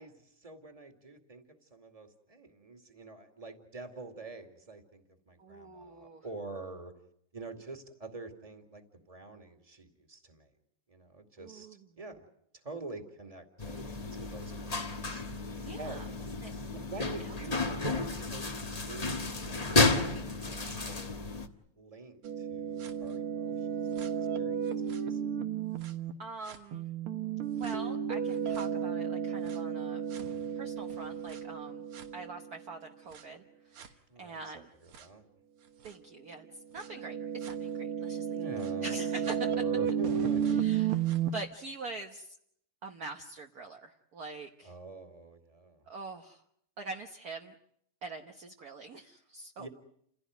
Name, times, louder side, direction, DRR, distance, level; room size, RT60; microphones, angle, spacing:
voice 1, 0.0-7.0 7.3-10.5 10.9-12.3 12.6-13.8 14.1-15.2 15.8-16.1 16.7-18.6 18.9-21.2 21.8-25.2 34.1-35.2 38.3-40.9 44.6-45.9 49.6-49.7, right 3 dB, 15° right, 6 dB, 2.4 m, -47 dB
voice 2, 5.4-6.2 11.4-11.8 15.6-16.0 16.4-16.5 17.2-17.3 26.2-26.9 27.6-30.0 30.5-31.8 32.1-34.7 35.8-36.5 36.7-38.4 38.8-39.5 40.5-41.0 41.3-42.4 42.8-44.7 45.9-46.4 46.8-47.5 48.0-49.7, right 3 dB, 50° right, 3 dB, 1.6 m, -44 dB
sound 1, 13.6-21.5, left 3 dB, 20° left, 1.3 m, -32 dB
sound 2, 22.2-26.1 26.5-32.6 33.1-33.2 33.8-33.9 34.9-35.0 35.8-35.9 36.8-41.3, right 8 dB, 75° right, 2.3 m, -33 dB
29.0 x 16.5 x 9.4 m, 0.72 s
omnidirectional pair, 2.4 m